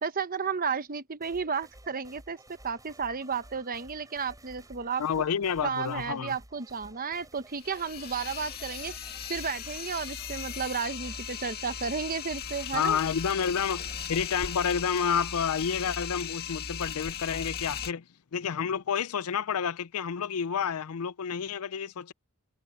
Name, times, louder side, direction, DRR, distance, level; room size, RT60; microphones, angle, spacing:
voice 1, 0.0-2.4 2.6-5.0 5.6-8.9 9.3-13.0, right 5 dB, 40° right, 1.0 m, -33 dB
sound 1, 1.2-14.8, right 1 dB, 15° right, 7.8 m, -54 dB
voice 2, 5.0-6.4 12.7-18.0 18.3-22.1, left 7 dB, 80° left, 0.5 m, -29 dB
sound 2, 7.5-17.9, left 7 dB, 45° left, 2.1 m, -38 dB
head